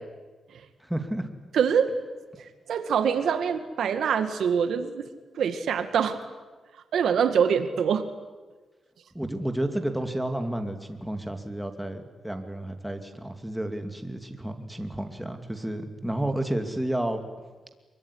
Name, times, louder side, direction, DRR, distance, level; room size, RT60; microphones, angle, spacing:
voice 1, 0.8-1.3 9.1-17.2, right 1 dB, 5° right, 6 dB, 2.5 m, -31 dB
voice 2, 1.5-1.9 2.7-5.1 5.4-6.2 6.9-8.1, right 7 dB, 80° right, 9 dB, 2.1 m, -24 dB
24.0 x 23.0 x 10.0 m, 1.3 s
cardioid pair, 115°, 0 cm